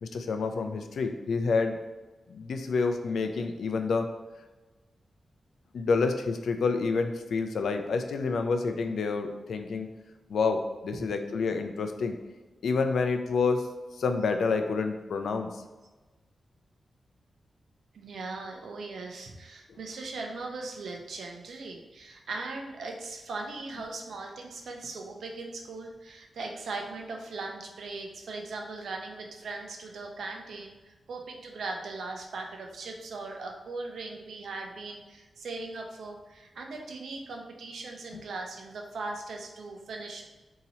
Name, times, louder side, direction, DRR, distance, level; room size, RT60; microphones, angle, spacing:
voice 1, 0.0-1.8 2.3-4.1 5.7-9.9 10.3-12.2 12.6-13.7 14.0-15.6 19.7-19.8 38.1-38.2, left 4 dB, 80° left, 6 dB, 0.4 m, -28 dB
voice 2, 17.9-40.2, right 3 dB, 85° right, 2 dB, 0.5 m, -39 dB
4.1 x 2.8 x 2.8 m, 1.2 s
wide cardioid pair, 135°, 0 cm